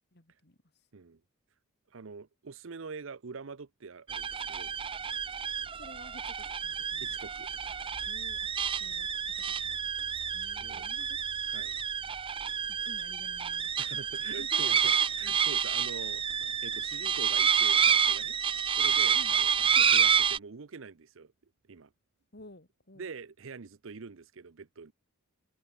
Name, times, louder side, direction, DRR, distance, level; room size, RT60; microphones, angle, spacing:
voice 1, 0.1-0.6 5.7-6.3 6.6-7.2 8.0-8.4 8.8-9.3 9.6-9.8 10.3-11.5 12.7-13.7 14.4-15.4 19.1-19.4 22.3-23.1, left 2 dB, 50° left, 2.6 m, -52 dB
voice 2, 1.9-4.7 7.0-7.5 10.5-10.9 11.5-11.7 13.8-16.4 16.6-18.4 18.8-21.3 21.7-21.9 23.0-24.9, right 4 dB, 65° right, 0.7 m, -45 dB
sound 1, 4.1-20.4, right 7 dB, 25° right, 0.5 m, -29 dB
head